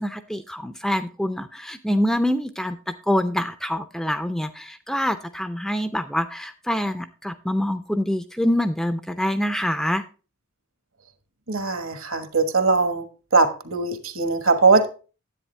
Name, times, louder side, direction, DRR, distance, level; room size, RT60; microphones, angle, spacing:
voice 1, 0.0-10.0, equal, ahead, 9 dB, 0.3 m, -25 dB
voice 2, 11.5-13.1 13.3-14.9, right 4 dB, 70° right, 8 dB, 1.3 m, -20 dB
10.0 x 8.2 x 3.3 m, 0.34 s
head